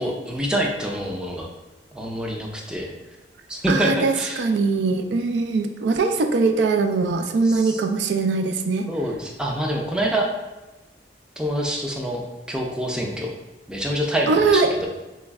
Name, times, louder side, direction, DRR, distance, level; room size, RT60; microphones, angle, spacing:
voice 1, 0.0-1.5 1.9-2.9 3.5-4.4 7.4-7.8 8.9-10.3 11.4-12.2 12.5-13.3 13.7-14.9, equal, 5° right, -1 dB, 0.4 m, -26 dB
voice 2, 3.7-8.9 14.3-14.7, right 4 dB, 80° right, 7 dB, 0.3 m, -21 dB
3.2 x 3.0 x 3.5 m, 1.1 s
head